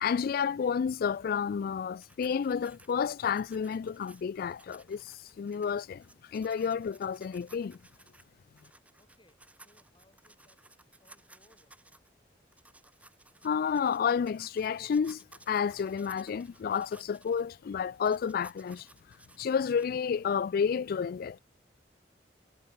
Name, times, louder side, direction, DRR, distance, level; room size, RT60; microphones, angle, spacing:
voice 1, 0.0-6.0 6.3-7.8 13.4-18.9 19.4-21.4, left 6 dB, 55° left, 0.3 m, -30 dB
sound 1, 2.0-8.3 8.6-12.1 12.5-17.4 17.9-19.9, right 2 dB, 10° right, 4.5 m, -58 dB
voice 2, 9.0-10.6 11.0-11.8, left 1 dB, 25° left, 7.5 m, -66 dB
head